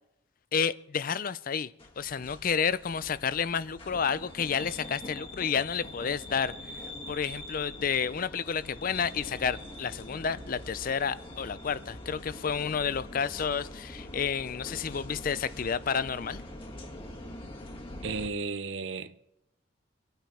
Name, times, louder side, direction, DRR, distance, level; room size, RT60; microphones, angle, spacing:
voice 1, 0.5-1.7 2.0-6.5 7.1-16.4, left 6 dB, 45° left, 0.4 m, -30 dB
sound 1, 1.8-18.3, left 1 dB, 30° left, 1.5 m, -44 dB
voice 2, 18.0-19.2, right 4 dB, 70° right, 0.8 m, -34 dB
25.0 x 9.1 x 4.3 m
head